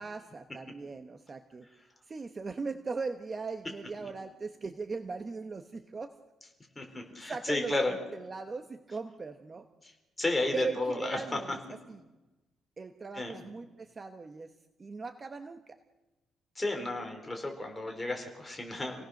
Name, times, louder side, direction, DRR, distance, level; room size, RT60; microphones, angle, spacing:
voice 1, 0.0-1.7 2.1-6.1 6.9-9.7 10.5-11.6 11.9-12.0 12.8-15.8, right 4 dB, 25° right, 7 dB, 1.0 m, -39 dB
voice 2, 6.8-8.0 9.8-11.6 13.1-13.4 16.6-19.1, left 2 dB, 10° left, 3 dB, 4.3 m, -33 dB
28.0 x 18.0 x 6.5 m, 1.1 s
cardioid pair, 155°, 0 cm